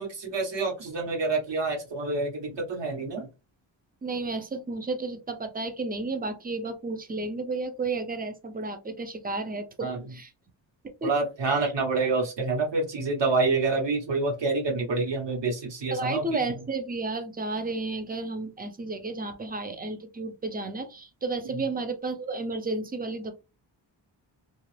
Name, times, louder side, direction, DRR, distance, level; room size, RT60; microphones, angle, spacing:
voice 1, 0.0-3.3 9.8-10.0 11.0-16.4, right 3 dB, 65° right, 1.2 m, -27 dB
voice 2, 4.0-10.3 10.8-11.1 11.5-11.7 15.9-23.3, right 3 dB, 20° right, 0.4 m, -32 dB
2.8 x 2.4 x 3.2 m
wide cardioid pair, 135°, 46 cm